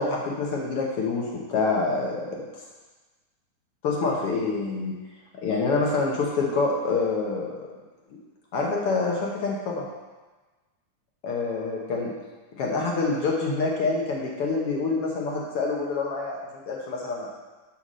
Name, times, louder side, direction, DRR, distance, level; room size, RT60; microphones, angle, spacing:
voice 1, 0.0-2.4 3.8-4.9 5.4-7.7 8.5-9.9 11.2-12.1 12.6-16.4 16.7-17.3, left 3 dB, 60° left, -2 dB, 1.6 m, -26 dB
7.0 x 5.9 x 6.3 m, 1.2 s
omnidirectional pair, 3.8 m